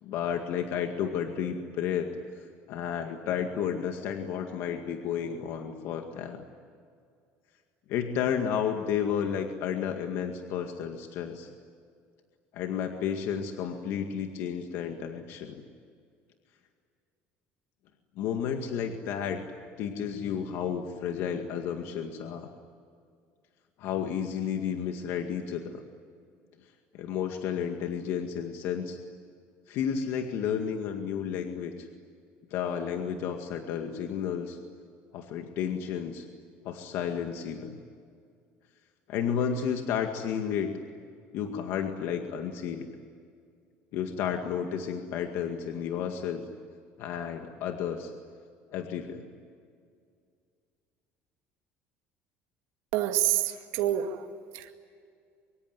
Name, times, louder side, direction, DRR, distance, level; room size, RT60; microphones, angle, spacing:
voice 1, 0.0-6.5 7.9-11.5 12.5-15.6 18.2-19.4 19.8-22.5 23.8-25.8 26.9-29.0 29.7-31.9 32.5-34.6 35.1-36.3 36.6-37.8 39.1-40.8 41.3-42.9 43.9-46.4 47.0-48.1 48.7-49.3, left 8 dB, 55° left, 4 dB, 2.0 m, -32 dB
voice 2, 52.9-54.2 54.5-54.7, right 12 dB, 70° right, 5 dB, 2.2 m, -27 dB
24.5 x 24.0 x 9.8 m, 2.2 s
cardioid pair, 170°, 5 cm